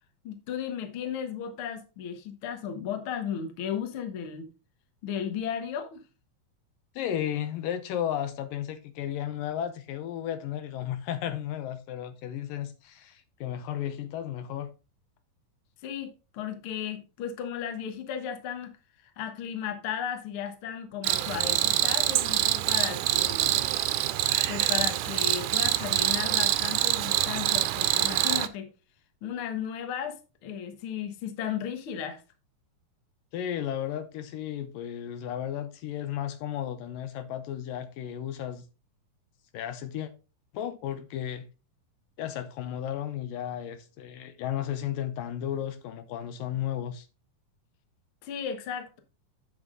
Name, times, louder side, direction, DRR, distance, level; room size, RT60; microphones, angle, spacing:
voice 1, 0.2-4.5 5.0-6.0 15.8-18.7 19.0-23.6 24.5-28.7 29.2-32.2 48.2-49.0, left 8 dB, 55° left, 1.5 m, -35 dB
voice 2, 7.0-14.7 33.3-38.7 39.5-40.1 40.5-41.5 42.2-47.1, left 10 dB, 75° left, 2.4 m, -34 dB
Cricket, 21.0-28.5, right 14 dB, 80° right, 1.9 m, -25 dB
7.9 x 7.3 x 3.7 m
omnidirectional pair, 4.1 m